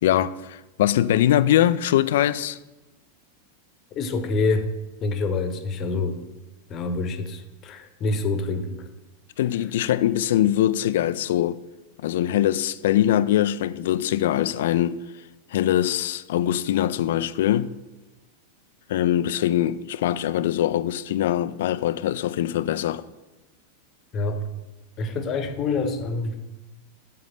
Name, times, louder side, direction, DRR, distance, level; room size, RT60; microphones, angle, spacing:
voice 1, 0.0-2.6 9.4-11.6 12.0-15.0 15.5-17.7 18.9-23.1, left 12 dB, 55° left, 0.4 m, -22 dB
voice 2, 3.9-4.7 5.0-6.3 6.7-8.8 24.1-24.4 25.0-26.4, left 3 dB, 30° left, 1.0 m, -26 dB
7.8 x 5.1 x 7.5 m
figure-of-eight pair, 90°, 0 cm